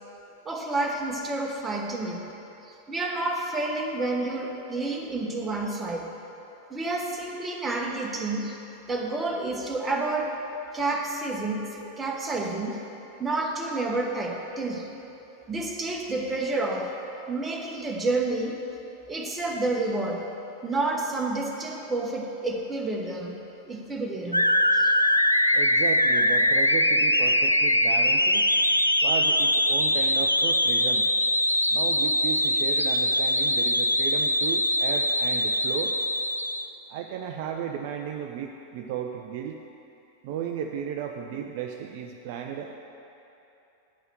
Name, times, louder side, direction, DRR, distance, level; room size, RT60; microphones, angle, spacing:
voice 1, 0.4-2.3 2.6-6.1 6.7-8.6 8.9-10.4 10.7-12.8 13.2-14.9 15.5-17.0 17.3-18.6 19.1-20.3 20.6-23.3 23.7-24.5 24.7-25.0, right 2 dB, 15° right, 0 dB, 1.2 m, -29 dB
sound 1, 24.3-36.7, left 1 dB, 90° left, 0.3 m, -22 dB
voice 2, 25.5-28.5 29.0-31.1 31.7-36.0 36.9-39.6 40.2-42.7, right 8 dB, 50° right, 3 dB, 0.5 m, -34 dB
8.9 x 5.5 x 7.5 m, 2.9 s
figure-of-eight pair, 90°, 0 cm